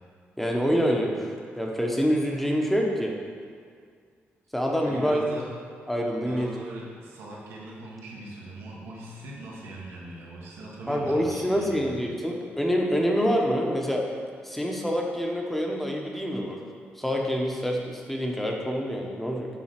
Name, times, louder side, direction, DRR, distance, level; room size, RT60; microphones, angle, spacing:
voice 1, 0.4-3.1 4.5-5.3 5.9-6.5 10.9-14.0 14.4-16.6 17.0-19.5, equal, 5° left, 0 dB, 1.1 m, -26 dB
voice 2, 4.8-5.5 6.2-11.9, right 2 dB, 85° right, -4 dB, 1.7 m, -40 dB
7.5 x 3.9 x 5.9 m, 2.1 s
cardioid pair, 95°, 4 cm